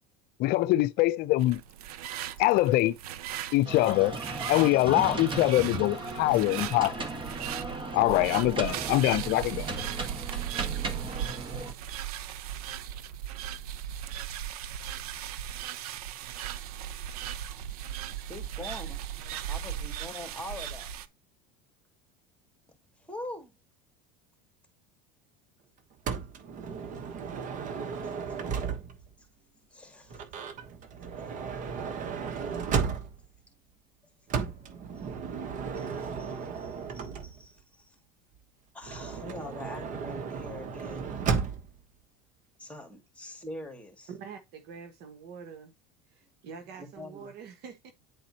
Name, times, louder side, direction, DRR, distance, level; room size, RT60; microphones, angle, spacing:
voice 1, 0.4-1.6 2.4-2.9 3.5-4.2 4.5-6.9 7.9-9.7, left 17 dB, 55° left, 0.6 m, -24 dB
sound 1, 1.4-21.1, right 10 dB, 85° right, 0.7 m, -38 dB
sound 2, 3.6-11.7, right 3 dB, 25° right, 1.6 m, -36 dB
voice 2, 18.3-19.0 19.5-20.9 23.0-23.5 28.0-28.7 29.2-30.3 30.9-31.1 32.4-33.6 34.0-35.1 35.7-38.0 38.7-41.1 42.6-44.1 46.6-47.3, left 1 dB, 5° left, 2.4 m, -45 dB
Motor vehicle (road) / Sliding door, 26.1-29.1 30.1-33.4 34.3-37.6 38.8-41.8, right 6 dB, 45° right, 1.2 m, -34 dB
voice 3, 44.1-45.7 46.4-47.9, right 6 dB, 60° right, 1.5 m, -45 dB
9.8 x 4.2 x 2.9 m
supercardioid pair, 110°, 19 cm